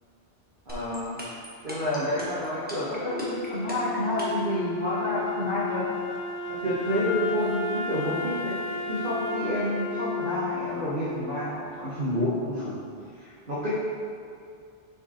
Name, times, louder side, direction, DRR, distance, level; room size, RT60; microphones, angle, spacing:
sound 1, 0.7-4.5, right 1 dB, 10° right, 1.1 m, -38 dB
voice 1, 0.7-1.2 1.6-5.8 6.6-8.6 8.9-12.7 13.2-13.8, equal, 50° right, -11 dB, 1.3 m, -29 dB
Wind instrument woodwind instrument, 3.0-12.1, left 5 dB, 75° left, 0.9 m, -33 dB
5.4 x 5.0 x 4.2 m, 2.3 s
omnidirectional pair, 1.1 m